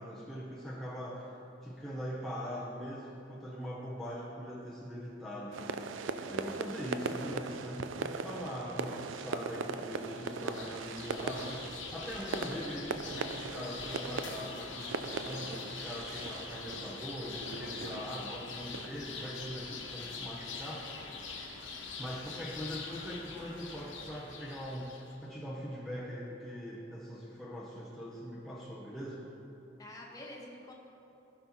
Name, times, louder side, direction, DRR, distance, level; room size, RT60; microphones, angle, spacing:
voice 1, 0.0-1.3 1.6-20.9 22.0-29.3, equal, ahead, -6 dB, 0.7 m, -42 dB
sound 1, 5.5-18.9, right 4 dB, 80° right, 0.4 m, -40 dB
voice 2, 6.2-7.4 29.8-30.7, left 1 dB, 20° left, -2 dB, 1.4 m, -50 dB
sound 2, 10.0-25.2, left 4 dB, 75° left, 1.1 m, -44 dB
16.0 x 6.0 x 3.5 m, 2.9 s
head